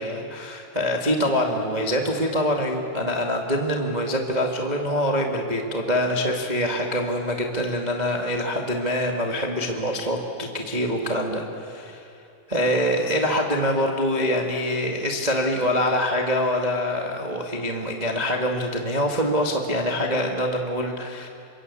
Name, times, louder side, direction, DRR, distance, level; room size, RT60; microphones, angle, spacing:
voice 1, 0.0-12.1 12.5-21.3, equal, 50° right, 1 dB, 0.5 m, -25 dB
27.5 x 24.5 x 8.4 m, 2.6 s
omnidirectional pair, 4.7 m